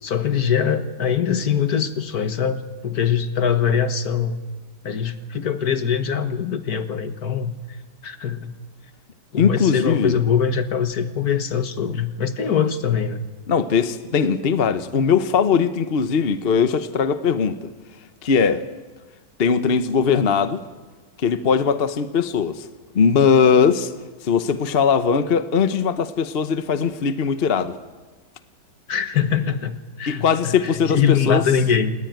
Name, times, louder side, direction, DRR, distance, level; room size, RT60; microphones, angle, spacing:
voice 1, 0.0-4.4 4.8-7.5 8.0-8.5 9.3-13.2 28.9-32.0, left 7 dB, 60° left, 1.8 m, -22 dB
voice 2, 9.4-10.2 13.5-17.7 18.2-18.6 19.4-20.6 21.2-22.7 22.9-23.9 24.2-27.8 30.1-31.4, left 6 dB, 40° left, 1.0 m, -20 dB
28.5 x 19.5 x 9.2 m
omnidirectional pair, 1.8 m